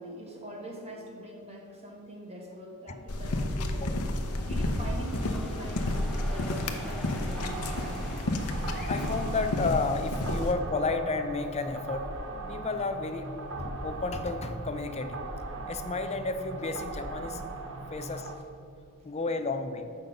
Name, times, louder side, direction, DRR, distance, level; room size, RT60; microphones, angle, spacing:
voice 1, 0.0-4.0 4.5-8.2, right 1 dB, 30° right, -1 dB, 1.3 m, -43 dB
sound 1, 3.1-10.5, left 1 dB, 85° left, 0.8 m, -31 dB
sound 2, 3.9-10.8, equal, ahead, 1.2 m, -46 dB
sound 3, 7.4-18.4, right 3 dB, 60° right, 0.8 m, -39 dB
voice 2, 8.9-12.1 12.5-13.3 13.6-15.2 15.7-17.4 17.9-18.4 19.0-19.9, left 3 dB, 30° left, 8 dB, 0.5 m, -32 dB
7.6 x 5.3 x 5.3 m, 2.6 s
head